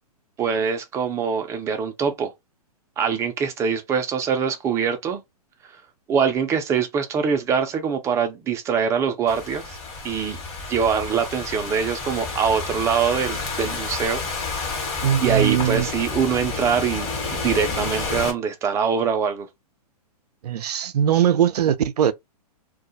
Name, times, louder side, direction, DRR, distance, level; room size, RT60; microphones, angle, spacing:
voice 1, 0.4-2.3 3.0-5.2 6.1-9.8 10.0-10.4 10.7-14.3 14.5-19.5, right 6 dB, 15° right, 0.4 m, -24 dB
Thunderstorm / Rain, 9.3-18.3, left 4 dB, 30° left, 1.2 m, -30 dB
voice 2, 15.0-15.9 20.4-22.1, right 10 dB, 80° right, 0.4 m, -20 dB
2.3 x 2.1 x 2.7 m
hypercardioid pair, 130°, 20 cm